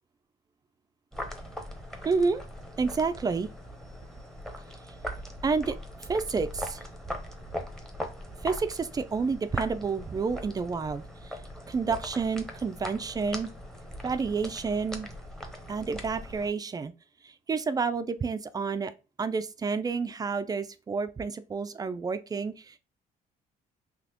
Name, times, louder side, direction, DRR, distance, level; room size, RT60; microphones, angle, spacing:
sound 1, 1.1-16.5, equal, 5° left, 0.7 m, -40 dB
voice 1, 2.0-2.4 2.8-3.5 5.4-5.8 6.1-6.8 8.4-11.4 11.7-13.5 14.0-15.1 15.7-16.9 17.2-18.9 19.2-22.8, right 4 dB, 20° right, 0.3 m, -29 dB
4.1 x 2.9 x 2.8 m
cardioid pair, 110°, 17 cm